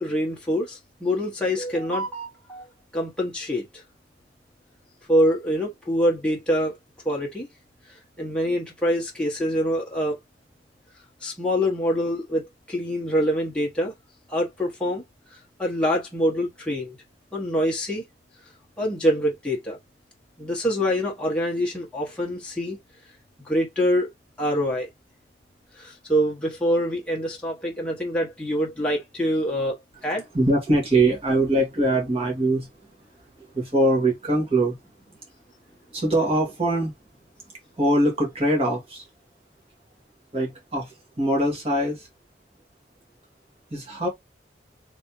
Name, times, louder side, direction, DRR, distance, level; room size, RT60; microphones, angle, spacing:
voice 1, 0.0-2.6 2.9-3.8 5.1-6.7 7.0-7.5 7.9-10.2 11.2-13.9 14.3-15.0 15.6-17.0 17.3-18.0 18.8-19.8 20.4-22.8 23.4-24.1 24.4-24.9 25.8-29.8 30.0-30.3, equal, 5° left, 1.1 m, -25 dB
voice 2, 30.3-32.7 33.4-34.8 35.9-36.9 37.8-39.1 40.3-42.1 43.7-44.1, right 1 dB, 35° right, 1.7 m, -22 dB
3.5 x 3.3 x 2.9 m
head